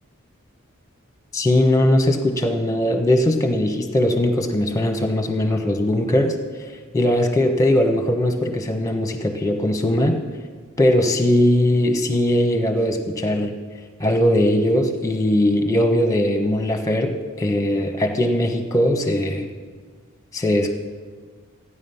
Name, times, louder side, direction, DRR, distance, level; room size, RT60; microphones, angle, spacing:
voice 1, 1.3-6.4 6.9-10.2 10.8-13.5 14.0-19.5 20.3-20.7, left 1 dB, 15° left, 5 dB, 1.2 m, -20 dB
15.0 x 10.0 x 5.6 m, 1.5 s
head